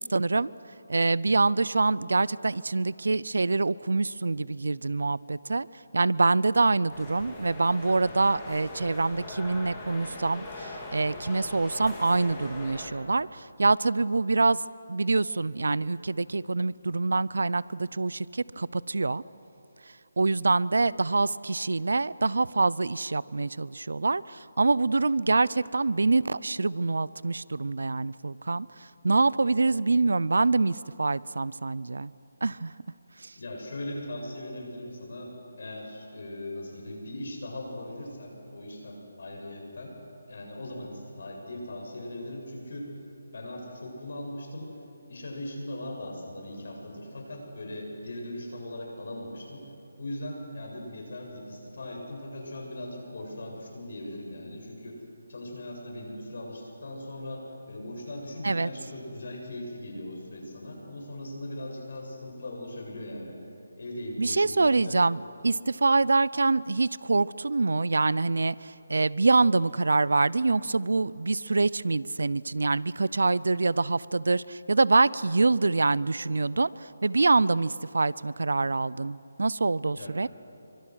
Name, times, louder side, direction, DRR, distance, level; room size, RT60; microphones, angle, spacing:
voice 1, 0.1-0.5 0.9-5.7 5.9-14.6 14.9-19.2 20.2-32.1 32.4-32.7 33.2-33.3 58.4-58.7 64.2-80.3, right 3 dB, 80° right, 21 dB, 0.6 m, -25 dB
sound 1, 6.9-12.9, left 2 dB, 15° left, 3.3 m, -41 dB
voice 2, 33.3-40.0 40.3-42.9 43.3-44.7 45.1-49.7 50.0-55.0 55.3-63.4 63.8-65.0 79.9-80.2, left 1 dB, 60° left, 0 dB, 7.8 m, -39 dB
29.0 x 24.5 x 6.5 m, 2.9 s
hypercardioid pair, 170°, 0 cm